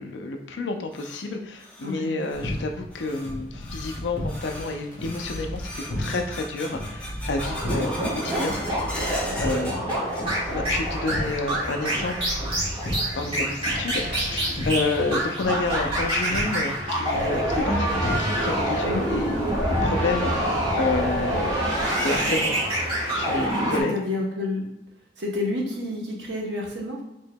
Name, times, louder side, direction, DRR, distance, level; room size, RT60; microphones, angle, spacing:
voice 1, 0.0-8.6 9.4-10.0 10.5-12.4 13.2-19.3 19.8-21.5 21.9-22.5 23.1-23.9, left 3 dB, 90° left, 4 dB, 0.5 m, -30 dB
sound 1, 0.5-10.7 10.9-11.6 11.9-12.0 12.8-12.9 14.5-14.6 15.0-15.1 15.6-15.7 16.2-16.3 16.8-17.2, left 1 dB, 5° left, 0.6 m, -39 dB
voice 2, 1.8-2.2 5.9-6.2 9.2-9.4 18.9-19.1 23.7-24.7 25.2-27.0, left 2 dB, 80° right, -1 dB, 0.8 m, -30 dB
sound 2, 2.3-21.4, equal, 50° left, 0.9 m, -35 dB
sound 3, 7.4-23.8, right 1 dB, 30° right, 1.2 m, -26 dB
4.4 x 2.8 x 2.2 m, 0.90 s
head